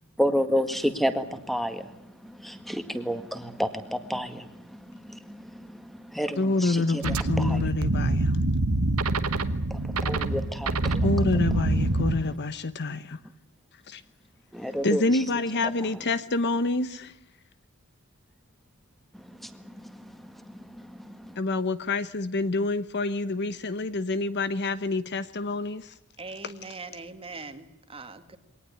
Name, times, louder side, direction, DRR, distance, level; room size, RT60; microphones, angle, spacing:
voice 1, 0.2-7.7 9.7-11.1 14.5-15.0 19.2-21.4, equal, ahead, 9 dB, 1.9 m, -31 dB
voice 2, 6.4-8.3 11.0-13.2 13.9-14.0 14.8-17.1 21.4-25.9, left 3 dB, 50° left, 13 dB, 1.0 m, -27 dB
sound 1, 7.0-12.2, right 2 dB, 70° right, 1.3 m, -25 dB
voice 3, 26.2-28.4, right 3 dB, 25° right, 8 dB, 1.9 m, -41 dB
22.0 x 18.5 x 9.9 m, 0.80 s
head